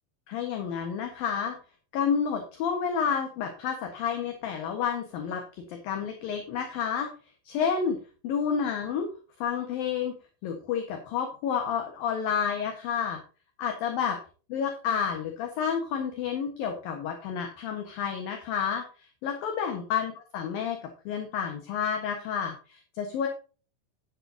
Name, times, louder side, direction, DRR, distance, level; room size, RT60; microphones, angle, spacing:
voice 1, 0.3-1.6 1.9-7.1 7.4-8.0 8.2-9.1 9.4-10.2 10.4-13.2 13.6-14.2 14.5-18.8 19.2-20.8 21.1-23.3, left 7 dB, 60° left, 4 dB, 2.6 m, -30 dB
11.0 x 10.0 x 2.8 m, 0.36 s
omnidirectional pair, 5.7 m